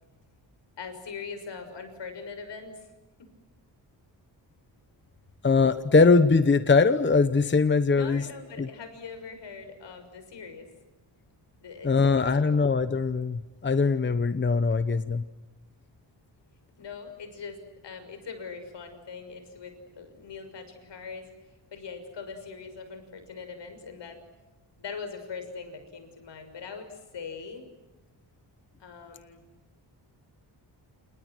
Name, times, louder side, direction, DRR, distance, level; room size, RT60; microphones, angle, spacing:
voice 1, 0.8-2.9 3.2-3.3 7.9-10.7 11.6-12.6 16.8-24.2 24.8-27.7 28.8-29.4, left 5 dB, 75° left, 8 dB, 6.4 m, -41 dB
voice 2, 5.4-8.2 8.6-8.7 11.8-15.2, left 4 dB, 25° left, 12 dB, 1.0 m, -22 dB
29.5 x 29.0 x 6.2 m, 1.1 s
wide cardioid pair, 140°, 43 cm